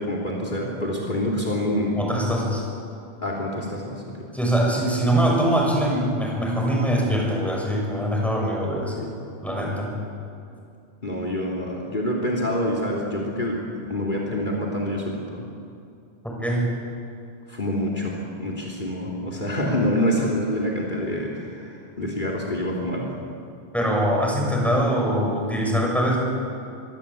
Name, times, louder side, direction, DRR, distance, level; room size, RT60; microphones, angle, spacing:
voice 1, 0.0-2.1 3.2-4.2 11.0-15.5 17.5-23.1, left 1 dB, 45° left, -1 dB, 3.4 m, -26 dB
voice 2, 2.0-2.7 4.3-9.1 9.4-9.9 16.2-16.7 23.7-26.2, equal, ahead, -1 dB, 6.5 m, -23 dB
25.5 x 23.0 x 8.6 m, 2.5 s
omnidirectional pair, 1.1 m